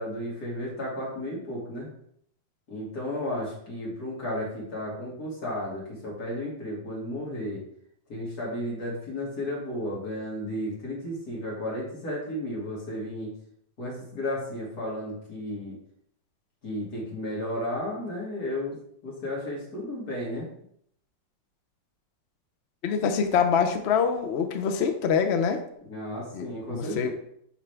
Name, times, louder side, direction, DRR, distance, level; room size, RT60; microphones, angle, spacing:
voice 1, 0.0-1.9 2.7-7.6 8.1-13.3 13.8-15.8 16.6-18.8 19.0-20.5 25.8-27.1, left 1 dB, 55° left, -4 dB, 2.9 m, -33 dB
voice 2, 22.8-25.6 26.3-27.1, left 6 dB, 70° left, 6 dB, 0.6 m, -25 dB
7.3 x 5.7 x 3.4 m, 0.69 s
omnidirectional pair, 2.0 m